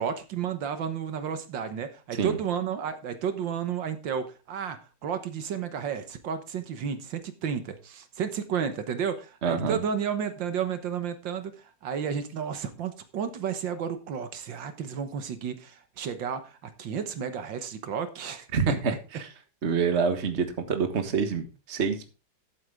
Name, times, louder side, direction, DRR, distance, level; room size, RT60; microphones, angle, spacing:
voice 1, 0.0-19.0, right 7 dB, 80° right, 9 dB, 1.9 m, -32 dB
voice 2, 9.4-9.8 18.5-19.3 19.6-22.1, right 5 dB, 40° right, 7 dB, 1.6 m, -27 dB
13.5 x 7.9 x 3.6 m, 0.31 s
omnidirectional pair, 2.0 m